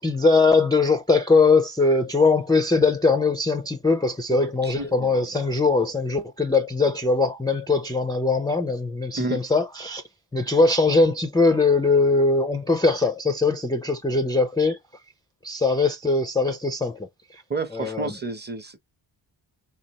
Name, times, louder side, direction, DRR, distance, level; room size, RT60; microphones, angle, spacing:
voice 1, 0.0-10.0 10.3-14.8 15.4-17.0 17.3-17.4 17.7-18.1, left 3 dB, 10° left, 0.4 m, -21 dB
voice 2, 4.3-5.2 9.2-9.5 17.5-18.8, right 3 dB, 25° right, 0.7 m, -31 dB
4.0 x 2.3 x 2.9 m
wide cardioid pair, 140°, 44 cm